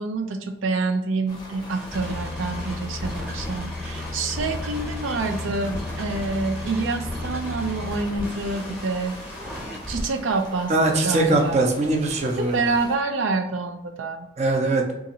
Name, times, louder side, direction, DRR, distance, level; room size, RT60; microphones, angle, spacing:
voice 1, 0.0-9.2 9.9-11.6 12.5-14.3, right 3 dB, 90° right, 5 dB, 0.4 m, -27 dB
sound 1, 1.3-13.0, left 1 dB, 20° left, 0.6 m, -42 dB
sound 2, 1.7-10.0, left 2 dB, 5° right, 0.9 m, -33 dB
voice 2, 10.7-12.8 14.4-14.9, right 2 dB, 35° right, 1 dB, 0.6 m, -21 dB
3.8 x 2.5 x 2.9 m, 0.92 s
head